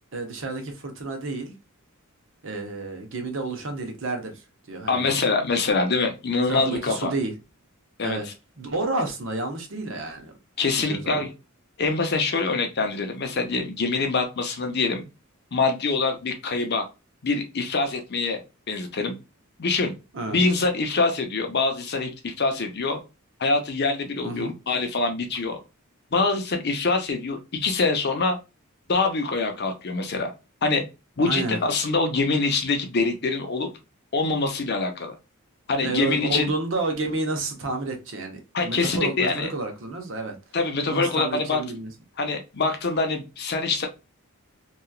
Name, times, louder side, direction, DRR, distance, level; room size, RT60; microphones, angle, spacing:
voice 1, 0.1-1.5 2.4-5.1 6.5-7.3 8.0-8.3 8.6-10.3 10.8-11.2 20.1-20.4 24.2-24.5 31.3-31.6 35.8-40.4 40.9-41.9, right 2 dB, 60° right, 0.7 m, -30 dB
voice 2, 4.9-7.1 8.0-8.2 10.6-11.3 11.8-15.1 15.5-16.9 17.2-18.4 18.7-19.2 19.6-19.9 20.3-23.0 23.4-25.6 26.1-28.4 28.9-30.3 30.6-30.8 31.2-33.7 34.1-35.2 35.7-36.5 38.5-39.5 40.5-41.6 42.2-43.9, left 3 dB, 50° left, 0.6 m, -24 dB
2.9 x 2.3 x 2.2 m
head